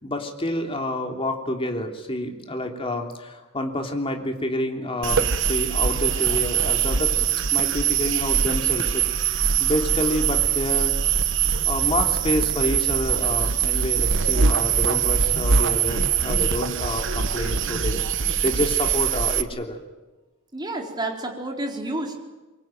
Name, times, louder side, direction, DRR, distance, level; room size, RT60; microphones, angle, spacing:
voice 1, 0.0-7.1 7.5-10.9 11.6-19.8, left 1 dB, 25° left, 3 dB, 3.2 m, -28 dB
sound 1, 5.0-19.4, right 7 dB, 60° right, 1.1 m, -22 dB
voice 2, 20.5-22.2, right 2 dB, 20° right, 1 dB, 4.1 m, -30 dB
24.0 x 23.5 x 9.2 m, 1.2 s
head